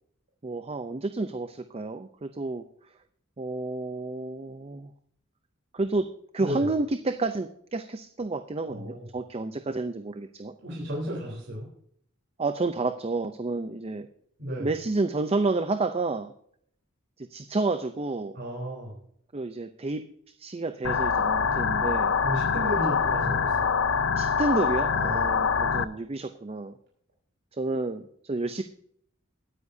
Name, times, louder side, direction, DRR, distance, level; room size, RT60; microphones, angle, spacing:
voice 1, 0.4-2.6 3.4-4.9 5.7-6.1 6.3-10.5 12.4-14.1 14.6-16.3 17.2-18.4 19.3-20.0 20.4-22.2 24.2-26.8 27.5-28.6, right 3 dB, 30° right, 9 dB, 0.5 m, -30 dB
voice 2, 8.7-9.1 10.6-11.6 14.4-14.7 18.4-19.0 22.2-23.7 25.0-25.2, equal, 60° right, -4 dB, 3.7 m, -34 dB
sound 1, 20.8-25.8, left 6 dB, 65° left, 0.6 m, -25 dB
21.0 x 9.6 x 2.7 m, 0.65 s
head